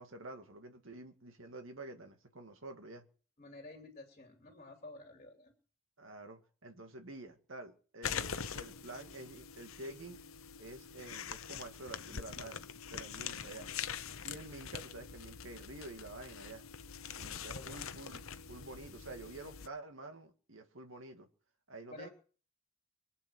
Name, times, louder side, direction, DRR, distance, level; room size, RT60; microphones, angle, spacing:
voice 1, 0.0-3.0 6.0-10.2 10.6-12.6 12.9-13.7 14.2-16.7 17.2-21.3 21.7-22.1, right 2 dB, 70° right, 2.1 m, -49 dB
voice 2, 3.4-5.5 17.5-17.7 21.9-22.1, left 2 dB, 35° left, 2.7 m, -51 dB
sound 1, 8.0-19.7, left 7 dB, 85° left, 0.9 m, -44 dB
24.0 x 8.4 x 6.2 m
head